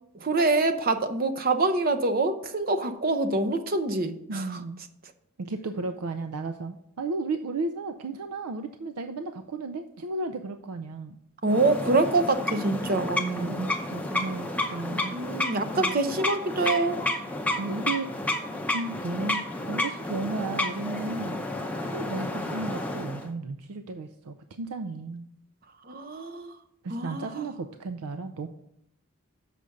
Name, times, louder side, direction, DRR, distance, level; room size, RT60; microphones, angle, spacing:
voice 1, 0.2-4.5 11.4-13.7 15.1-17.0 25.9-26.5 26.9-27.4, right 2 dB, 40° right, 8 dB, 0.6 m, -25 dB
voice 2, 4.3-4.8 5.4-11.2 13.4-15.2 15.7-16.0 17.6-18.1 18.7-21.4 21.8-25.3 26.8-28.5, right 3 dB, 90° right, 8 dB, 0.5 m, -34 dB
sound 1, 11.5-23.3, left 1 dB, 5° left, 0.6 m, -31 dB
6.9 x 5.0 x 6.4 m, 0.76 s
head